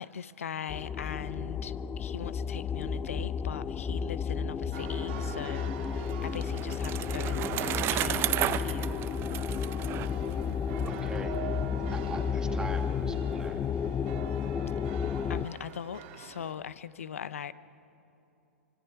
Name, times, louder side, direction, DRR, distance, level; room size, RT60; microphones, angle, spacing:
voice 1, 0.0-9.0 15.3-17.5, left 8 dB, 75° left, 16 dB, 0.7 m, -40 dB
sound 1, 0.7-15.5, left 6 dB, 20° left, 0.5 m, -32 dB
sound 2, 4.7-16.5, right 10 dB, 55° right, 1.7 m, -44 dB
Bicycle, 5.8-10.9, right 13 dB, 30° right, 0.6 m, -33 dB
voice 2, 10.8-11.3 11.9-13.6, right 3 dB, 10° right, 5 dB, 1.6 m, -41 dB
27.5 x 25.0 x 4.7 m, 2.8 s
hypercardioid pair, 105°, 8 cm